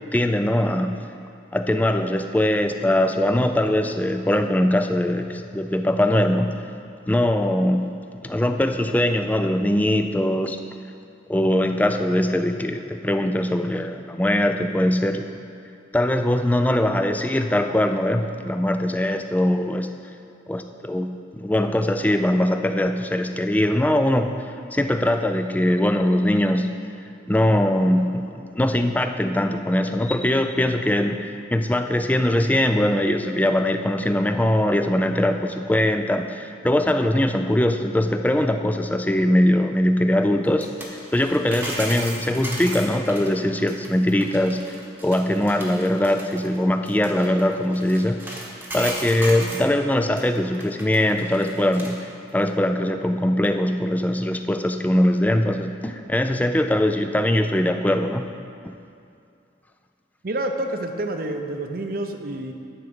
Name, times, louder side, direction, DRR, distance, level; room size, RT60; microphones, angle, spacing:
voice 1, 0.1-1.0 1.5-6.6 7.1-7.9 8.2-10.6 11.3-15.3 15.9-19.9 20.5-24.3 24.7-26.7 27.3-40.7 41.1-44.7 45.0-48.3 48.7-58.3, left 1 dB, 10° left, 7 dB, 0.3 m, -21 dB
sound 1, 40.4-49.7 50.2-52.0 52.3-52.4, right 1 dB, 10° right, 1.0 m, -36 dB
voice 2, 60.2-62.5, right 1 dB, 50° right, 6 dB, 0.6 m, -28 dB
9.8 x 4.6 x 7.0 m, 2.5 s
head